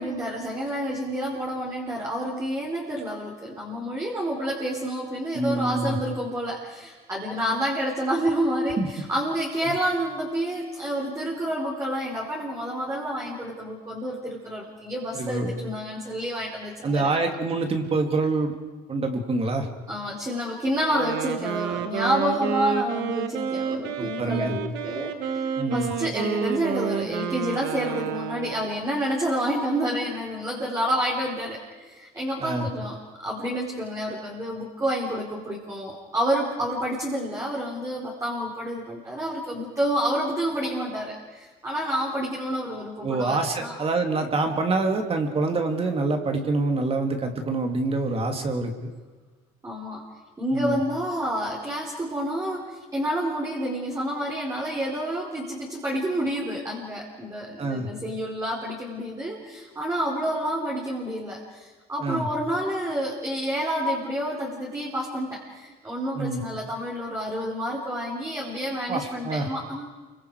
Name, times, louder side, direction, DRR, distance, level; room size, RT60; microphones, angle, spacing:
voice 1, 0.0-17.2 19.9-33.0 33.2-43.8 49.6-50.0 50.4-69.9, equal, 15° right, -4 dB, 4.5 m, -29 dB
voice 2, 5.3-6.0 8.8-8.9 15.1-15.5 16.8-18.5 18.9-19.7 24.0-24.6 25.6-25.9 32.4-32.7 43.0-48.9 50.5-50.8 57.6-57.9 62.0-62.3 66.1-66.4 68.9-69.5, right 3 dB, 30° right, 4 dB, 2.9 m, -26 dB
Wind instrument woodwind instrument, 20.8-28.7, right 8 dB, 75° right, 1.9 m, -30 dB
28.5 x 25.0 x 5.0 m, 1.3 s
cardioid pair, 115°, 18 cm